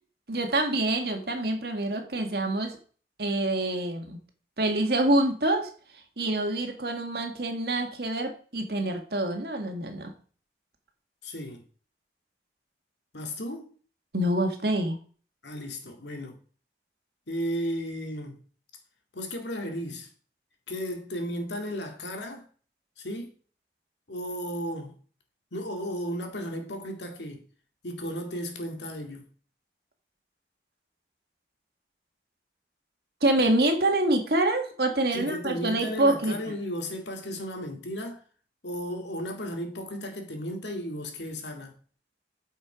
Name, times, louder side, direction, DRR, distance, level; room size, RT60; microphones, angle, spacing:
voice 1, 0.3-2.8 3.2-4.2 4.6-5.7 6.2-10.1 14.1-15.0 33.2-36.4, right 1 dB, 65° right, 1.8 m, -26 dB
voice 2, 11.2-11.6 13.1-13.7 15.4-16.4 17.3-18.4 19.1-20.1 20.7-22.5 23.0-23.3 24.1-25.0 25.5-27.4 27.8-29.3 35.1-38.2 38.6-41.7, equal, 85° left, 2.1 m, -34 dB
8.7 x 5.7 x 4.9 m
head